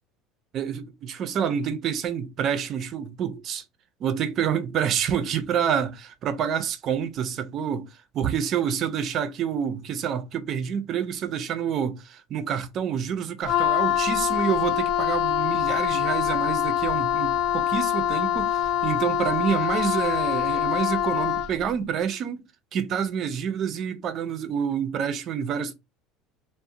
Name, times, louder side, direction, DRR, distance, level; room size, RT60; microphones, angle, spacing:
voice 1, 0.5-3.6 4.0-7.9 8.1-22.4 22.7-25.7, right 8 dB, 40° right, 0.4 m, -28 dB
Wind instrument woodwind instrument, 13.4-21.6, left 10 dB, 55° left, 0.4 m, -24 dB
2.4 x 2.0 x 2.6 m
cardioid pair, 140°, 0 cm